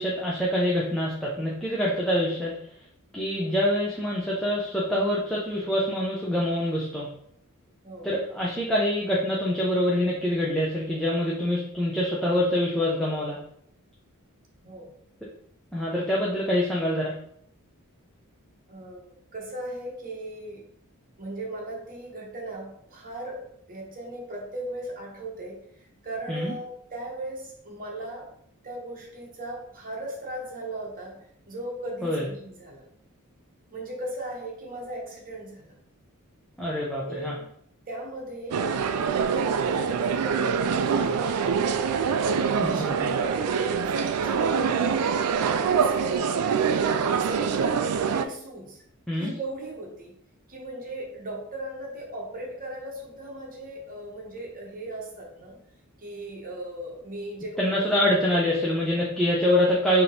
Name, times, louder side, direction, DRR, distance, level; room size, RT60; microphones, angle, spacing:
voice 1, 0.0-2.6 3.1-7.1 8.0-13.4 15.7-17.1 26.3-26.5 32.0-32.3 36.6-37.4 42.5-43.0 49.1-49.3 57.6-60.0, left 1 dB, 5° left, -5 dB, 0.6 m, -25 dB
voice 2, 14.6-14.9 18.7-20.6 21.2-25.6 26.0-28.3 28.6-31.1 31.5-32.8 33.7-35.8 37.0-37.4 37.9-38.6 38.9-41.3 42.2-45.2 45.5-47.8 48.1-48.8 49.1-50.1 50.5-55.5 56.0-57.9, right 1 dB, 40° right, -1 dB, 1.1 m, -37 dB
sound 1, 38.5-48.3, right 6 dB, 75° right, 0.3 m, -25 dB
3.6 x 2.9 x 3.9 m, 0.68 s
head